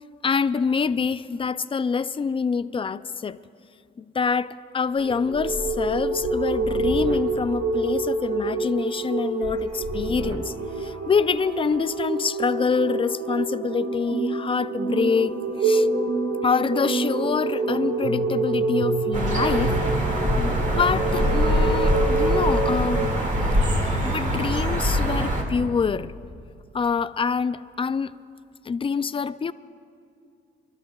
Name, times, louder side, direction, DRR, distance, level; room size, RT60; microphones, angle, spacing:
voice 1, 0.2-3.4 4.0-15.9 16.4-19.7 20.4-23.1 23.6-23.7 24.0-26.1 26.7-28.1 28.6-29.5, left 5 dB, 25° left, 15 dB, 0.4 m, -26 dB
sound 1, 5.0-23.0, right 2 dB, 75° right, 1.7 m, -26 dB
sound 2, 19.1-25.4, equal, 40° right, 2.2 m, -23 dB
29.5 x 13.0 x 2.3 m, 2.4 s
cardioid pair, 90°, 20 cm